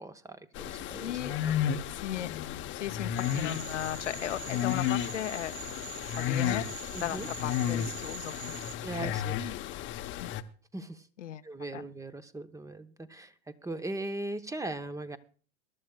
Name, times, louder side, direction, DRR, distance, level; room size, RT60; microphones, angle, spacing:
voice 1, 0.0-1.9 6.9-7.3 8.8-9.3 10.7-11.1 11.4-15.2, right 2 dB, 10° right, 12 dB, 0.8 m, -39 dB
sound 1, 0.5-10.4, left 10 dB, 35° left, 0.8 m, -33 dB
voice 2, 0.8-1.3 1.9-2.3 2.7-5.5 6.2-6.7 7.0-8.6 9.0-9.6 9.9-10.3 11.2-11.4 11.7-11.8, left 11 dB, 85° left, 11 dB, 0.8 m, -37 dB
Cricket / Frog, 3.1-8.7, right 8 dB, 60° right, 2.6 m, -45 dB
22.5 x 12.0 x 2.3 m, 0.40 s
hypercardioid pair, 95°, 35 cm